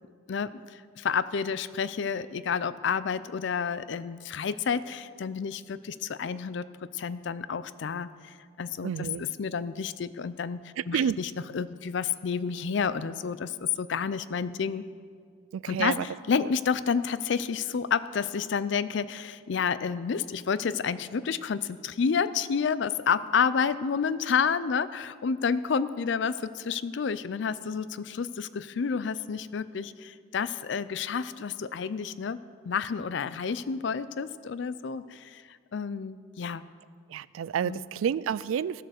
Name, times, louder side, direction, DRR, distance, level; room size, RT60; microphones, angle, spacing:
voice 1, 0.3-14.8 15.7-32.4 32.6-35.4 35.7-36.6 37.6-37.8, left 6 dB, 65° left, 16 dB, 0.4 m, -30 dB
voice 2, 8.8-9.2 10.8-11.2 15.5-16.0 37.1-38.8, right 8 dB, 85° right, 20 dB, 0.3 m, -29 dB
14.5 x 7.7 x 6.4 m, 2.1 s
head